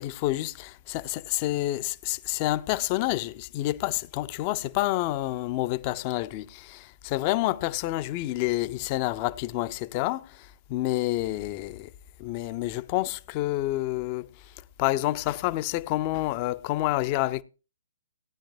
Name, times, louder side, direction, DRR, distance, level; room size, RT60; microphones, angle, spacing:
voice 1, 0.0-11.9 12.2-14.3 14.8-17.4, left 16 dB, 30° left, 0.6 m, -28 dB
18.0 x 10.0 x 2.7 m
figure-of-eight pair, 125°, 0 cm